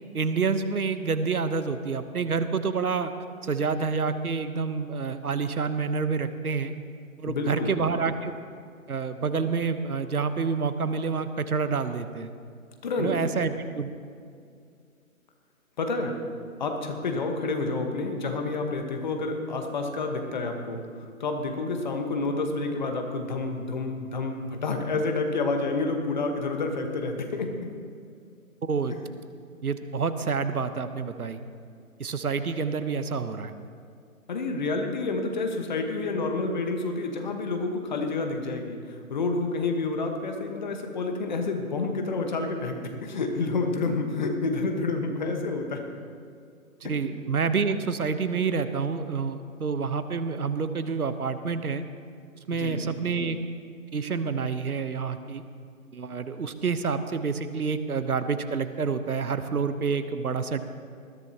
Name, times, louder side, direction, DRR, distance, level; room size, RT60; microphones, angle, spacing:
voice 1, 0.1-3.1 3.4-6.7 7.2-8.3 8.9-12.3 13.0-13.9 28.6-28.9 29.6-31.4 32.0-33.5 46.8-51.8 52.5-53.4 53.9-55.4 55.9-60.6, right 5 dB, 90° right, 10 dB, 1.1 m, -28 dB
voice 2, 7.3-7.7 12.8-13.1 15.8-16.2 16.6-27.7 34.3-45.8 52.5-52.9, left 3 dB, 30° left, 4 dB, 1.3 m, -29 dB
20.0 x 14.5 x 2.9 m, 2.3 s
hypercardioid pair, 160°, 43 cm